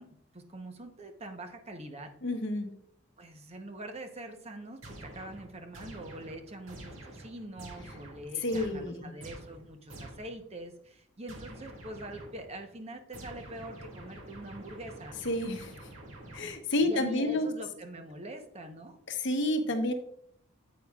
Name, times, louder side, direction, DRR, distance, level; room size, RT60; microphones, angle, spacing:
voice 1, 0.0-2.1 3.2-15.2 16.8-19.0, right 1 dB, 30° right, 5 dB, 0.9 m, -44 dB
voice 2, 2.2-2.7 8.4-9.1 15.2-15.7 16.3-17.5 19.1-19.9, left 1 dB, 60° left, 7 dB, 1.0 m, -29 dB
sound 1, 4.8-10.4 11.3-12.6 13.1-16.8, right 1 dB, 75° right, 1.9 m, -48 dB
9.1 x 8.3 x 2.4 m, 0.68 s
head